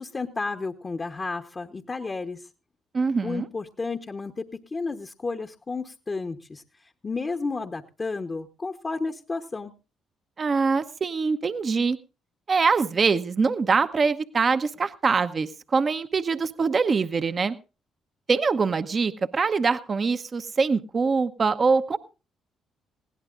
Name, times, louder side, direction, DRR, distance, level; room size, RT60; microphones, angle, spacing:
voice 1, 0.0-2.5 3.2-4.4 4.7-6.6 7.0-9.7, left 3 dB, 35° left, 5 dB, 1.0 m, -32 dB
voice 2, 2.9-3.4 10.4-12.0 12.5-17.5 18.3-22.0, right 4 dB, 45° right, 10 dB, 0.8 m, -23 dB
20.0 x 16.5 x 2.5 m, 0.32 s
hypercardioid pair, 55°, 0 cm